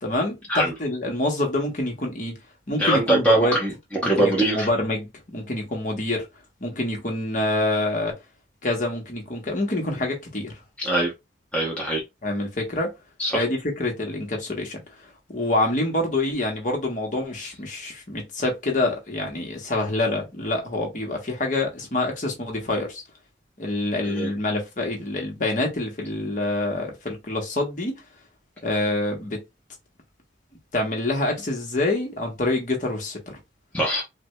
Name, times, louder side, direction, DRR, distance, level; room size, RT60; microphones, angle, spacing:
voice 1, 0.0-2.4 2.7-3.6 4.0-6.3 6.6-8.1 8.6-10.5 12.2-12.9 13.3-14.8 15.3-23.0 23.6-28.0 28.6-29.4 30.7-33.4, left 2 dB, 45° left, 1.1 m, -26 dB
voice 2, 2.8-3.7 4.0-4.7 10.8-11.1 11.5-12.0 13.2-13.4 24.0-24.3 33.7-34.0, right 1 dB, 10° left, 0.8 m, -22 dB
4.7 x 2.2 x 2.3 m
head